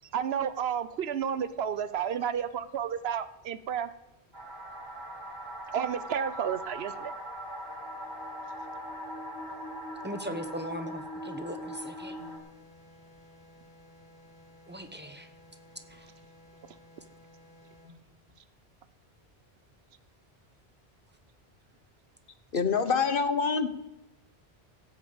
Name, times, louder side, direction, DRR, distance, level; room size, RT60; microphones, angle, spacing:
voice 1, 0.1-3.9 5.7-7.1, right 8 dB, 75° right, 14 dB, 0.9 m, -31 dB
sound 1, 4.3-12.4, equal, 45° right, 2.4 m, -40 dB
voice 2, 10.0-12.2 14.7-15.3 15.9-16.1, equal, 10° right, 7 dB, 0.8 m, -39 dB
sound 2, 12.2-18.0, left 1 dB, 5° left, 5.2 m, -56 dB
voice 3, 22.5-23.7, left 5 dB, 60° left, 10 dB, 1.1 m, -26 dB
16.0 x 5.9 x 7.8 m, 0.88 s
omnidirectional pair, 1.1 m